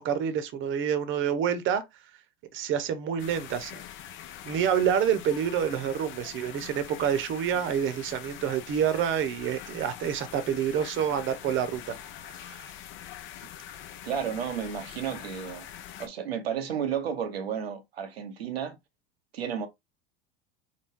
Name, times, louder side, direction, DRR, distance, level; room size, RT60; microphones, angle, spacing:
voice 1, 0.0-1.8 2.5-3.8 4.4-12.0 12.4-12.6, right 8 dB, 40° right, 0.9 m, -28 dB
sound 1, 3.2-16.1, left 11 dB, 40° left, 0.7 m, -44 dB
voice 2, 14.0-15.7 16.0-18.8 19.3-19.7, right 8 dB, 80° right, 0.8 m, -32 dB
4.7 x 2.2 x 3.5 m
hypercardioid pair, 85°, 30 cm